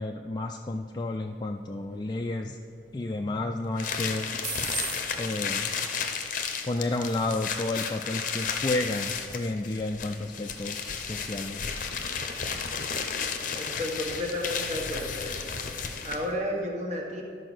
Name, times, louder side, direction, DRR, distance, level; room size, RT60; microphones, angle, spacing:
voice 1, 0.0-2.6 2.9-4.3 5.1-5.7 6.6-11.8, left 2 dB, 25° left, 3 dB, 0.3 m, -31 dB
sound 1, 0.6-12.5, right 3 dB, 60° right, 2.3 m, -45 dB
sound 2, 3.8-16.4, left 6 dB, 50° left, 0.7 m, -33 dB
voice 2, 13.5-15.5 16.0-17.2, left 1 dB, 40° right, -1 dB, 1.6 m, -32 dB
12.0 x 4.9 x 6.2 m, 2.3 s
head